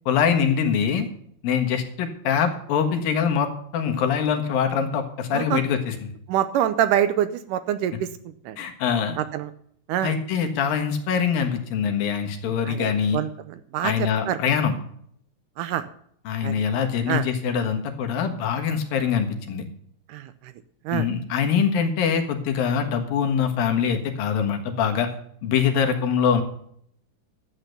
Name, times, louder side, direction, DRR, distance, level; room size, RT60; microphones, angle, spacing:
voice 1, 0.1-1.1 1.4-3.5 3.7-6.1 8.6-9.2 10.0-13.2 13.8-14.7 16.3-19.6 20.9-25.1 25.4-26.4, left 7 dB, 85° left, 5 dB, 3.2 m, -23 dB
voice 2, 6.3-8.1 8.5-8.6 9.2-9.5 9.9-10.1 12.7-13.3 13.7-13.9 14.3-14.4 15.6-15.8 16.4-16.5 17.1-17.2 20.1-20.2 20.9-21.1, right 11 dB, 80° right, 12 dB, 2.0 m, -25 dB
12.0 x 8.3 x 6.7 m, 0.65 s
omnidirectional pair, 4.0 m